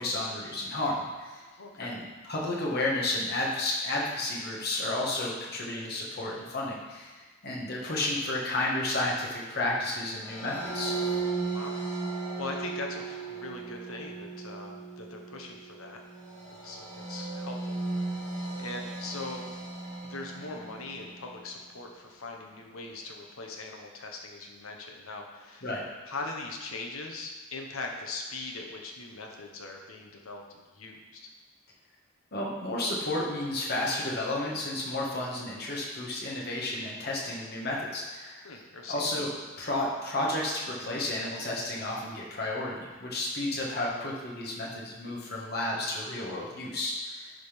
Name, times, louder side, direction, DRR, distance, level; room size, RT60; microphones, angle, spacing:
voice 1, 0.0-1.4 1.8-7.2 7.4-11.0 25.6-25.8 32.3-38.5 38.9-39.3 39.6-47.3, left 2 dB, 50° left, -4 dB, 1.7 m, -32 dB
voice 2, 1.6-2.0 11.5-11.8 12.4-16.0 16.5-17.8 18.6-19.4 20.0-25.7 26.1-31.2 38.4-39.1, left 3 dB, 85° left, 1 dB, 1.2 m, -41 dB
sound 1, 10.1-21.5, right 3 dB, 20° left, 2.7 m, -36 dB
11.0 x 4.0 x 5.3 m, 1.4 s
head